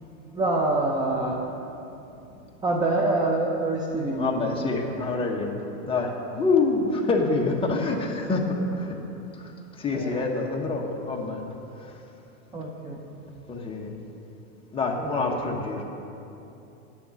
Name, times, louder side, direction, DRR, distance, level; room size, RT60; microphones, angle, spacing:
voice 1, 0.3-1.4 2.6-4.8 9.9-10.3 12.5-13.0 15.0-15.4, right 2 dB, 10° right, -1 dB, 0.6 m, -26 dB
voice 2, 4.2-5.6 5.9-8.9 9.4-9.5 9.8-11.5 13.5-13.9 14.7-15.8, left 3 dB, 15° left, 0 dB, 1.2 m, -26 dB
9.7 x 7.0 x 8.9 m, 2.9 s
supercardioid pair, 135°, 40 cm